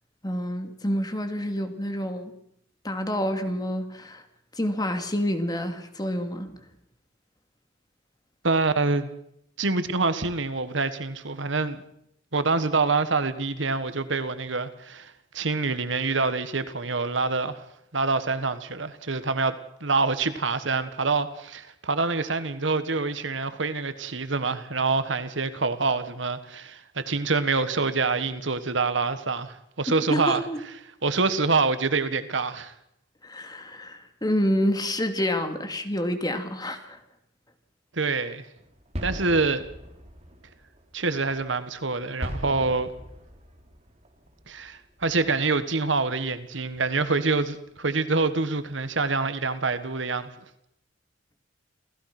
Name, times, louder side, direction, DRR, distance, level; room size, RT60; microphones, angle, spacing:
voice 1, 0.2-2.3 2.8-4.2 4.5-6.6 30.1-30.6 33.2-37.0, equal, 20° left, 2.5 m, -28 dB
voice 2, 8.4-9.1 9.6-11.8 12.3-17.6 17.9-30.4 31.0-32.7 37.9-38.5 39.0-39.6 40.9-42.9 44.5-50.3, right 3 dB, 70° right, 1.6 m, -26 dB
sound 1, 38.6-46.5 46.8-47.2 47.7-47.8 48.1-48.2 48.7-49.1, equal, 35° right, 4.0 m, -41 dB
28.0 x 16.5 x 6.1 m
head